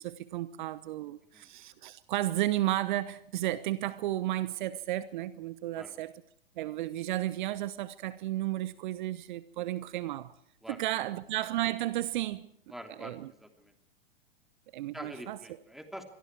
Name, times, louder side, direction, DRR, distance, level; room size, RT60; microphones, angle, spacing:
voice 1, 0.0-6.1 6.6-10.3 10.7-12.5 13.0-13.3 14.7-15.4, right 15 dB, 50° right, 1.0 m, -33 dB
voice 2, 10.6-11.0 12.7-13.7 14.9-16.0, equal, ahead, 3.1 m, -46 dB
26.5 x 22.5 x 4.7 m
figure-of-eight pair, 105°, 30 cm